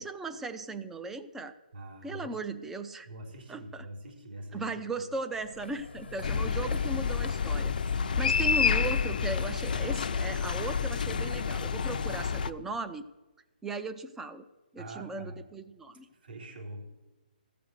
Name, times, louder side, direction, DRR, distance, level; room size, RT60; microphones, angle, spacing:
voice 1, 0.0-1.5 2.0-3.1 3.5-3.8 4.5-13.0 13.6-14.4 14.7-16.1, right 3 dB, 5° right, 9 dB, 0.5 m, -37 dB
voice 2, 1.7-2.4 3.0-5.1 6.2-6.3 8.0-8.6 14.8-15.5 16.1-16.8, right 1 dB, 70° right, -1 dB, 4.0 m, -44 dB
sound 1, 5.3-11.8, left 4 dB, 85° left, 1.2 m, -44 dB
sound 2, 6.2-12.5, left 6 dB, 60° left, 0.6 m, -29 dB
15.0 x 6.8 x 7.8 m, 1.1 s
hypercardioid pair, 160°, 5 cm